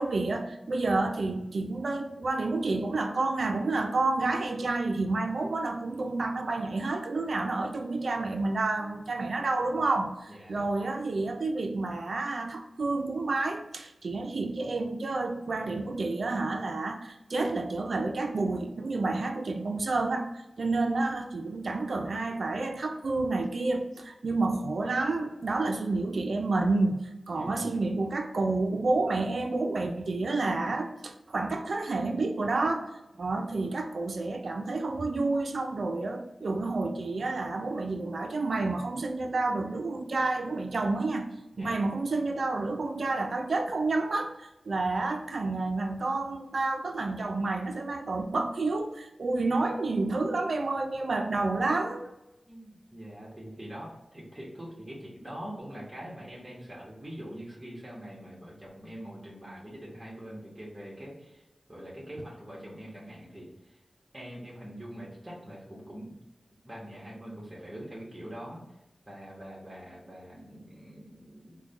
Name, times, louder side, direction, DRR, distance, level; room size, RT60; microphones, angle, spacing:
voice 1, 0.0-20.3 20.6-32.9 33.2-41.3 41.6-52.1, right 3 dB, 75° right, 4 dB, 0.4 m, -29 dB
voice 2, 10.3-10.7 27.3-27.8 41.5-41.8 52.5-63.8 64.1-66.1 66.6-68.8 69.1-71.6, equal, 20° right, -5 dB, 1.3 m, -44 dB
3.6 x 2.2 x 3.5 m, 0.95 s
cardioid pair, 55°, 0 cm